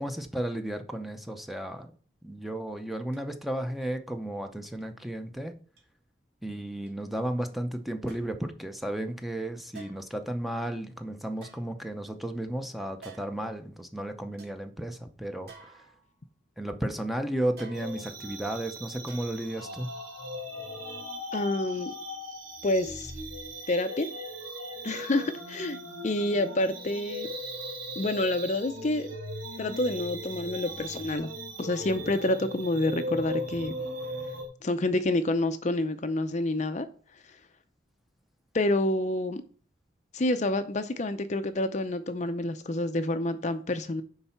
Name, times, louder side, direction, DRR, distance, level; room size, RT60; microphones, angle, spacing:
voice 1, 0.0-1.9 2.2-5.6 6.4-15.8 16.6-19.9, right 1 dB, ahead, 0.6 m, -34 dB
sound 1, 3.1-3.2 3.7-4.0 4.8-4.9 5.8-5.9 6.9-7.0 8.1-8.4 9.7-10.2 11.3-12.2 13.0-13.5 14.0-14.1 14.4-14.6 15.5-16.3 17.6-18.2 19.1-19.6 20.0-20.1, right 4 dB, 55° right, 2.5 m, -52 dB
sound 2, 17.7-34.5, equal, 75° right, 3.0 m, -38 dB
voice 2, 21.3-21.9 22.6-23.1 23.7-24.1 24.8-25.8 26.0-27.3 28.0-29.1 29.6-31.3 31.6-33.7 34.6-36.9 37.1-37.4 38.5-39.4 40.1-44.0, left 2 dB, 35° left, 0.5 m, -28 dB
9.8 x 4.0 x 5.8 m
head